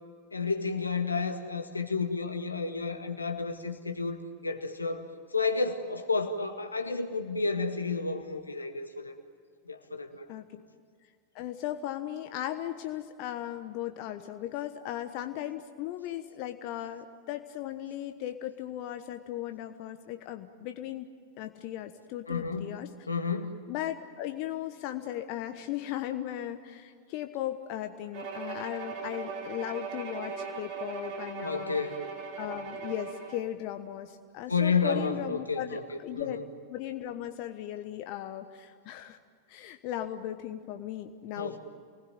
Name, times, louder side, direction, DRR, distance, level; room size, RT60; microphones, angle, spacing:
voice 1, 0.3-5.1 5.3-9.1 9.7-10.2 22.3-22.7 23.1-23.5 31.4-32.1 34.5-35.8 36.2-36.4 41.4-41.6, left 4 dB, 80° left, 5 dB, 2.1 m, -31 dB
voice 2, 11.3-21.1 21.4-22.9 23.7-31.8 32.4-36.4 36.7-39.2 39.5-41.6, left 12 dB, 45° left, 7 dB, 1.2 m, -37 dB
Bowed string instrument, 28.1-33.5, right 5 dB, 50° right, 4.8 m, -39 dB
28.5 x 20.0 x 9.4 m, 2.1 s
figure-of-eight pair, 90°, 0 cm